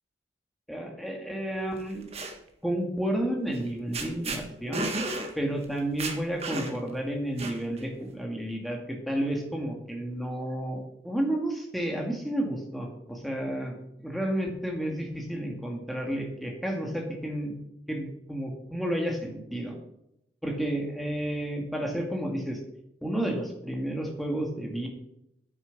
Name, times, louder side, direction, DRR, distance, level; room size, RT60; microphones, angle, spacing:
voice 1, 0.7-2.1 2.6-4.9 5.4-17.5 17.9-19.7 20.4-22.6 23.0-24.9, right 1 dB, ahead, 0 dB, 2.1 m, -31 dB
sound 1, 1.8-2.3 3.6-3.7 3.9-4.4 4.7-5.3 5.6-5.7 6.0-6.9 7.4-7.8, right 2 dB, 35° right, 1.6 m, -32 dB
9.4 x 8.8 x 6.0 m, 0.80 s
head